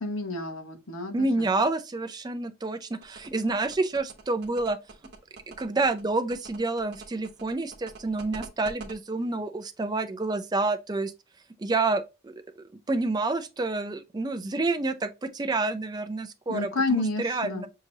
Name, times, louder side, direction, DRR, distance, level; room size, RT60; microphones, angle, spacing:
voice 1, 0.0-1.3 16.5-17.6, left 3 dB, 75° left, 1.0 m, -29 dB
voice 2, 1.1-4.8 5.6-11.1 11.6-12.3 12.9-17.7, right 3 dB, 20° right, 0.4 m, -28 dB
sound 1, 3.0-8.9, right 3 dB, 55° right, 1.0 m, -44 dB
5.8 x 2.9 x 2.7 m
head